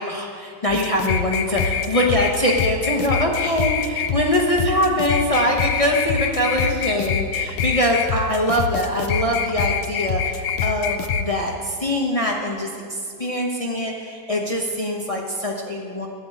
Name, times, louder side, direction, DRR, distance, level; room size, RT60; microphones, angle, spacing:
voice 1, 0.0-16.1, left 1 dB, 60° left, 0 dB, 0.3 m, -23 dB
sound 1, 0.7-11.2, left 6 dB, 90° left, 1.5 m, -25 dB
11.0 x 7.8 x 8.3 m, 2.2 s
omnidirectional pair, 2.3 m